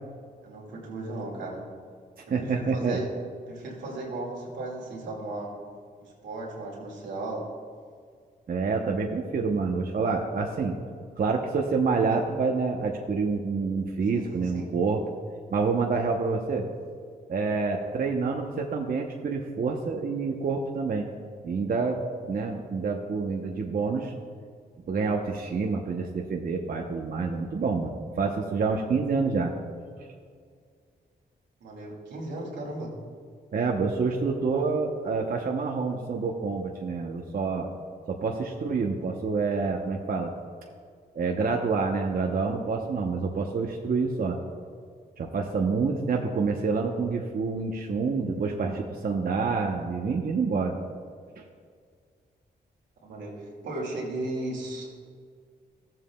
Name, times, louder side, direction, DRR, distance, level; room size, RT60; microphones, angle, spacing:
voice 1, 0.4-1.6 2.4-3.1 3.5-5.5 6.0-7.5 14.1-14.7 31.6-32.9 46.1-46.3 53.0-54.9, right 2 dB, 90° right, -3 dB, 2.0 m, -36 dB
voice 2, 2.3-3.0 8.5-10.7 11.2-15.0 15.5-16.7 17.3-21.1 21.4-22.0 22.3-24.1 24.9-29.5 33.5-37.7 38.1-40.3 41.1-44.4 45.2-50.7 51.4-51.5, right 4 dB, 55° right, 1 dB, 0.8 m, -27 dB
14.0 x 7.5 x 2.3 m, 2.1 s
cardioid pair, 55°, 18 cm